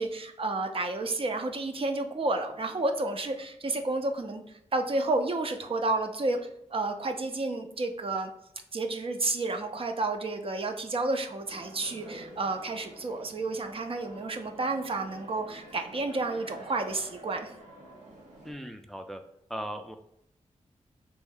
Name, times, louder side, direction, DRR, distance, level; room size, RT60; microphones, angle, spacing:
voice 1, 0.0-4.4 4.7-6.4 6.7-8.3 8.7-17.5, right 2 dB, 50° right, 5 dB, 0.5 m, -31 dB
sound 1, 11.5-18.5, right 1 dB, 90° right, 0.9 m, -49 dB
voice 2, 18.4-19.2 19.5-20.0, equal, 5° left, 6 dB, 0.3 m, -38 dB
3.1 x 2.6 x 3.7 m, 0.76 s
cardioid pair, 60°, 12 cm